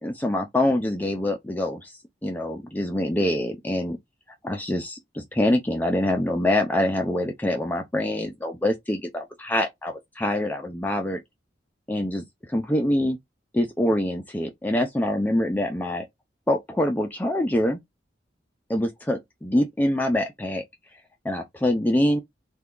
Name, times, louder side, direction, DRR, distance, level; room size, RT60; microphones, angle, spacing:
voice 1, 0.0-4.0 4.4-11.2 11.9-13.2 13.5-16.1 16.5-17.8 18.7-20.6 21.2-22.2, left 1 dB, 10° left, 0.4 m, -25 dB
3.5 x 2.3 x 3.5 m
head